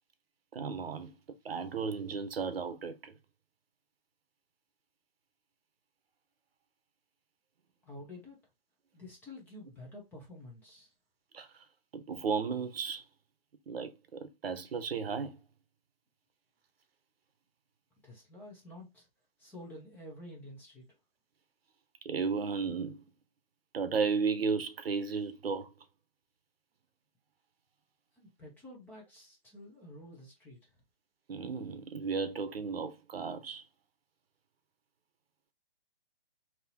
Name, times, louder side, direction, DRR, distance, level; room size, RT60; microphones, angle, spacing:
voice 1, 0.5-1.1 1.4-3.1 11.3-11.5 11.9-13.0 13.7-15.4 22.0-23.0 23.7-25.7 31.3-33.6, right 5 dB, 85° right, 0.9 m, -34 dB
voice 2, 7.8-8.4 8.9-10.9 18.0-19.1 19.4-20.8 28.2-30.7, left 1 dB, 5° left, 0.7 m, -49 dB
3.6 x 2.9 x 2.8 m
hypercardioid pair, 160°, 29 cm